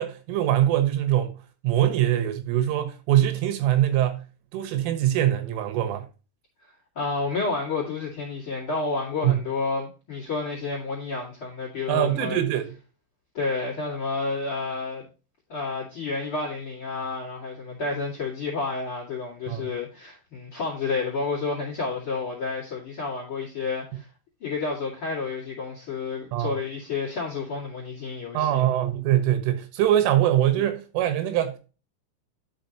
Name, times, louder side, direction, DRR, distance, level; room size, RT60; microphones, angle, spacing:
voice 1, 0.0-1.4 1.6-4.2 4.5-6.1 9.2-9.4 11.9-12.7 19.5-19.7 26.3-26.5 28.4-31.6, right 12 dB, 85° right, 3.7 m, -23 dB
voice 2, 7.0-12.4 13.3-15.0 15.5-24.1 24.4-28.6, left 4 dB, 40° left, 1.9 m, -30 dB
11.0 x 5.3 x 2.9 m
omnidirectional pair, 5.6 m